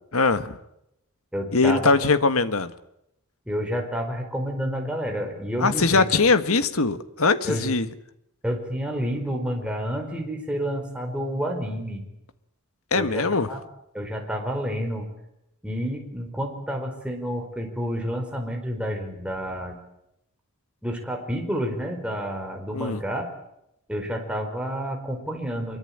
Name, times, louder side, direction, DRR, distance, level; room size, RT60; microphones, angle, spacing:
voice 1, 0.1-0.6 1.5-2.7 5.6-7.9 12.9-13.5 22.7-23.0, left 3 dB, 70° left, 12 dB, 1.6 m, -21 dB
voice 2, 1.3-1.9 3.5-6.1 7.5-7.7 8.4-12.0 12.9-13.6 13.9-15.1 15.6-19.8 20.8-23.3 23.9-25.8, equal, 5° right, 2 dB, 4.8 m, -29 dB
25.0 x 23.0 x 8.9 m, 0.83 s
head